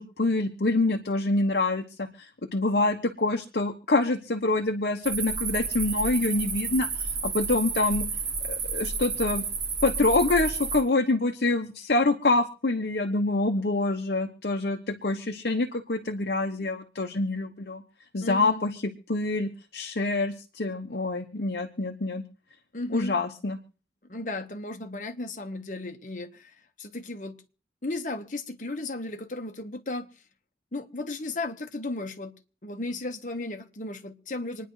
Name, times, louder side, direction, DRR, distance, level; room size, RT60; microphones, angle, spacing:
voice 1, 0.0-8.1 8.5-9.4 9.8-17.8 18.1-18.8 19.1-22.2 22.9-23.6, left 2 dB, 65° left, 5 dB, 1.0 m, -26 dB
sound 1, 5.0-10.8, right 5 dB, 65° right, 3.8 m, -31 dB
voice 2, 18.2-18.6 22.7-23.2 24.1-27.3 27.8-30.1 30.7-32.3 32.6-34.7, left 2 dB, 45° left, 6 dB, 1.3 m, -35 dB
26.5 x 10.0 x 3.2 m, 0.40 s
head